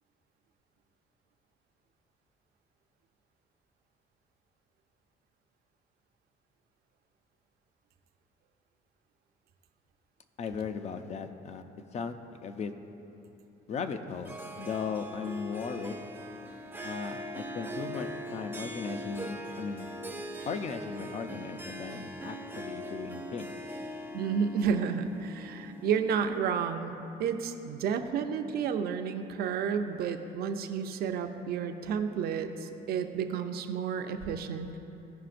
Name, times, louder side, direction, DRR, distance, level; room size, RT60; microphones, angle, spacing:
voice 1, 10.4-11.6 11.9-12.1 12.4-12.7 13.7-16.1 16.8-19.9 20.4-23.5, left 5 dB, 40° left, 8 dB, 0.5 m, -37 dB
Harp, 14.3-26.5, equal, 10° right, 0.6 m, -41 dB
voice 2, 24.1-34.8, right 6 dB, 65° right, 7 dB, 0.6 m, -31 dB
15.0 x 5.6 x 2.5 m, 2.9 s
cardioid pair, 110°, 17 cm